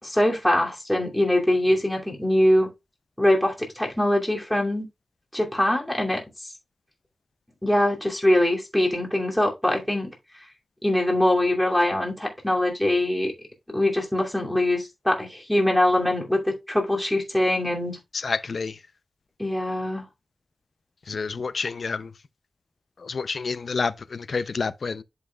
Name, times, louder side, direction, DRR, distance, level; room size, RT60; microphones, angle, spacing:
voice 1, 0.0-2.7 3.2-4.9 5.3-6.2 7.6-10.1 10.8-13.3 13.7-18.0 19.4-20.0, left 1 dB, 5° left, 2.6 m, -23 dB
voice 2, 18.2-18.8 21.1-22.1 23.0-25.0, left 4 dB, 60° left, 0.5 m, -29 dB
11.0 x 5.4 x 2.3 m
wide cardioid pair, 110°, 0 cm